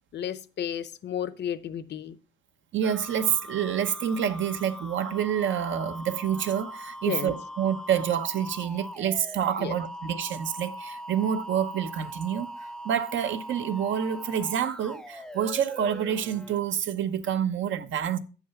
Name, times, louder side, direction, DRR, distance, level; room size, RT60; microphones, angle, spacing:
voice 1, 0.1-2.2 7.1-7.4 9.6-9.7, left 9 dB, 60° left, 0.8 m, -32 dB
voice 2, 2.7-12.5 12.8-18.2, right 9 dB, 75° right, 1.0 m, -28 dB
sound 1, 2.8-16.6, equal, 5° left, 0.6 m, -41 dB
8.9 x 6.3 x 5.7 m
cardioid pair, 90°, 20 cm